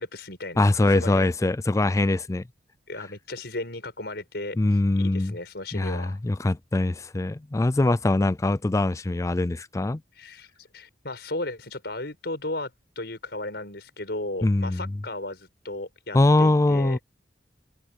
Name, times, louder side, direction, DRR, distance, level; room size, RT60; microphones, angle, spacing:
voice 1, 0.0-1.3 2.9-6.2 10.1-17.0, left 2 dB, 65° left, 6.8 m, -35 dB
voice 2, 0.6-2.4 4.6-5.3 5.7-10.0 14.4-14.8 16.1-17.0, left 2 dB, 15° left, 0.4 m, -22 dB
head